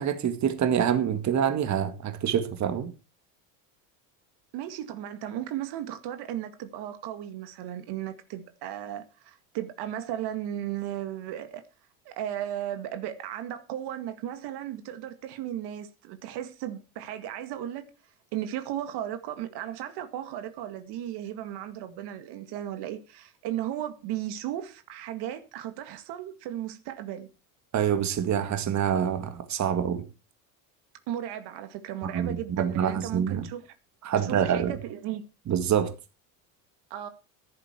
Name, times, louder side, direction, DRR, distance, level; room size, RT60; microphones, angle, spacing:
voice 1, 0.0-2.9 27.7-30.0 32.0-33.5 34.0-34.7 35.5-35.9, right 8 dB, 40° right, 2.1 m, -26 dB
voice 2, 4.5-11.6 12.1-17.9 18.3-27.3 31.1-33.7 34.2-35.2 36.9-37.1, right 11 dB, 65° right, 2.1 m, -35 dB
14.0 x 11.0 x 4.6 m
supercardioid pair, 100°, 43 cm